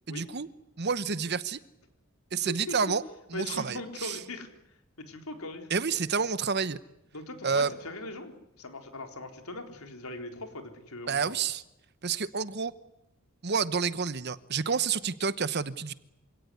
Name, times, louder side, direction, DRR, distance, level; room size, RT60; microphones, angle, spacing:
voice 1, 0.1-0.5 0.8-1.6 2.3-3.0 3.3-4.2 5.7-6.8 7.4-7.7 11.1-11.6 12.0-12.7 13.4-15.9, right 5 dB, 50° right, 15 dB, 1.0 m, -29 dB
voice 2, 3.3-4.5 5.1-5.7 7.1-11.4, left 2 dB, 90° left, 5 dB, 4.0 m, -40 dB
27.0 x 17.5 x 9.8 m, 0.86 s
head